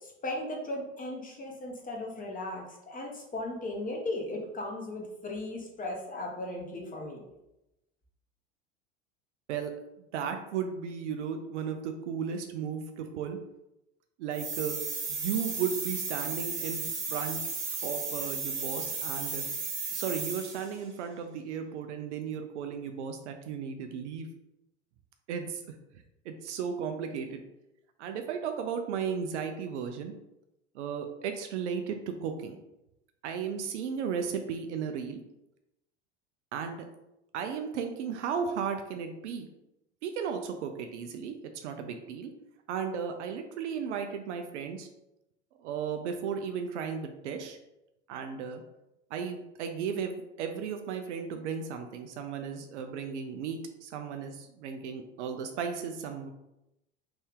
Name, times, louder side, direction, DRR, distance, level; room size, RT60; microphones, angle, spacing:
voice 1, 0.0-7.2, left 2 dB, 25° left, 0 dB, 1.1 m, -37 dB
voice 2, 10.0-13.4 14.2-14.8 15.1-17.4 17.8-19.4 19.9-24.3 25.3-25.6 26.3-27.4 28.0-30.1 30.7-32.6 33.2-35.2 36.5-36.9 37.3-39.5 40.0-41.4 41.6-42.3 42.7-44.9 45.6-47.6 48.1-48.6 49.1-56.3, right 7 dB, 75° right, 5 dB, 0.5 m, -35 dB
sound 1, 14.3-20.8, right 4 dB, 35° right, 1.2 m, -34 dB
3.4 x 2.7 x 3.5 m, 0.90 s
hypercardioid pair, 80°, 35 cm